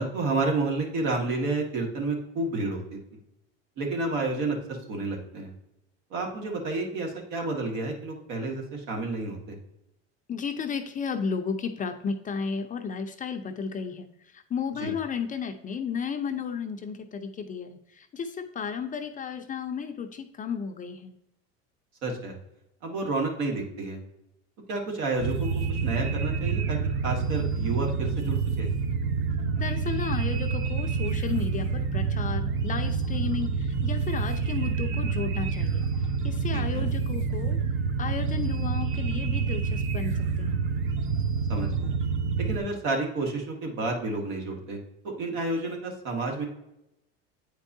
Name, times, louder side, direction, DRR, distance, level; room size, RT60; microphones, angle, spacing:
voice 1, 0.0-3.0 3.8-5.5 6.1-9.6 14.8-14.9 22.0-22.3 22.8-24.0 24.7-26.8 27.0-28.7 36.5-36.9 41.5-41.9 42.4-44.8 45.0-46.5, right 3 dB, 65° right, 1 dB, 1.9 m, -30 dB
voice 2, 10.3-14.1 14.3-21.1 29.6-35.8 36.2-37.6 38.0-40.6, left 6 dB, 25° left, 6 dB, 0.5 m, -33 dB
sound 1, 25.2-42.6, right 5 dB, 40° right, 0.7 m, -28 dB
8.6 x 4.5 x 2.7 m, 0.85 s
supercardioid pair, 115°, 31 cm